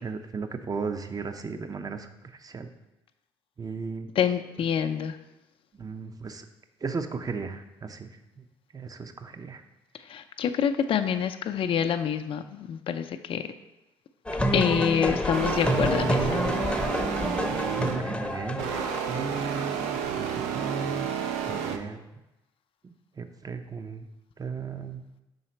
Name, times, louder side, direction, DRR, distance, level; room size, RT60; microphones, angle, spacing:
voice 1, 0.0-2.7 3.6-4.1 5.8-6.5 6.8-8.1 8.4-8.5 8.7-9.6 17.2-21.1 21.4-22.0 22.8-24.1 24.4-25.0, right 5 dB, 30° right, 8 dB, 0.6 m, -36 dB
voice 2, 4.2-5.2 10.1-13.4 14.5-16.4, left 8 dB, 50° left, 8 dB, 0.4 m, -27 dB
sound 1, 14.3-19.4, equal, 10° left, 0.7 m, -28 dB
sound 2, 15.3-18.1 18.6-21.8, right 8 dB, 80° right, 0.5 m, -31 dB
5.6 x 4.0 x 4.4 m, 0.96 s
hypercardioid pair, 55°, 12 cm